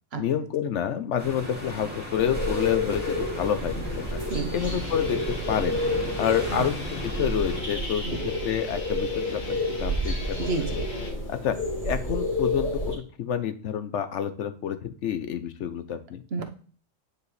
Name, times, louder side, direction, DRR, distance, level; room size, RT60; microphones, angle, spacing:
voice 1, 0.2-4.2 4.5-5.8 6.2-8.0 8.4-10.4 10.8-10.9 11.3-11.6 11.8-16.2, left 9 dB, 65° left, 11 dB, 0.9 m, -28 dB
sound 1, 1.2-7.6, left 2 dB, 5° right, 2.2 m, -36 dB
sound 2, 2.2-13.0, left 1 dB, 15° left, 2.8 m, -30 dB
voice 2, 4.3-4.8 6.5-6.7 8.0-8.3 10.4-10.8 16.3-16.4, right 4 dB, 55° right, 6 dB, 1.1 m, -31 dB
sound 3, 4.6-11.1, left 3 dB, 85° left, 2.1 m, -41 dB
9.4 x 4.9 x 3.2 m, 0.41 s
omnidirectional pair, 1.4 m